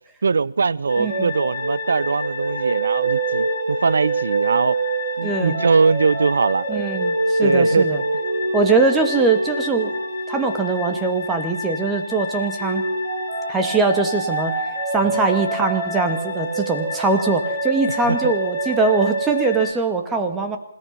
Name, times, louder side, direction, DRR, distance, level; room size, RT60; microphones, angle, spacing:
voice 1, 0.2-4.8 5.2-6.9 7.4-8.0 15.0-15.2 17.9-18.3, right 4 dB, 55° right, 0.7 m, -21 dB
sound 1, 0.9-19.7, left 5 dB, 40° left, 3.7 m, -32 dB
sound 2, 0.9-12.0 12.6-19.7, right 3 dB, 40° right, 3.6 m, -26 dB
voice 2, 1.0-1.3 5.2-5.6 6.7-8.0 8.5-10.0 10.3-12.9 13.5-14.6 14.9-20.6, right 4 dB, 10° right, 2.2 m, -21 dB
27.0 x 17.5 x 6.1 m
figure-of-eight pair, 145°, 0 cm